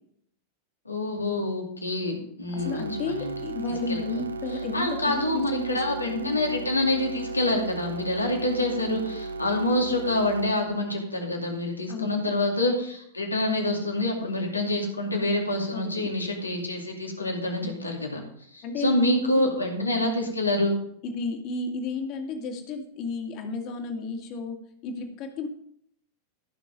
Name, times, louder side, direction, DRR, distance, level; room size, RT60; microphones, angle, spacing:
voice 1, 0.9-3.3 3.9-4.0 4.7-18.2 18.5-20.8, left 1 dB, 85° left, 1 dB, 2.5 m, -27 dB
voice 2, 2.5-6.4 11.9-12.3 15.7-16.1 17.6-17.8 18.6-19.0 19.3-19.5 21.0-25.5, left 3 dB, 40° left, 4 dB, 2.3 m, -33 dB
sound 1, 2.6-10.5, right 3 dB, 75° right, 0.6 m, -35 dB
14.5 x 6.1 x 5.3 m, 0.67 s
figure-of-eight pair, 90°, 0 cm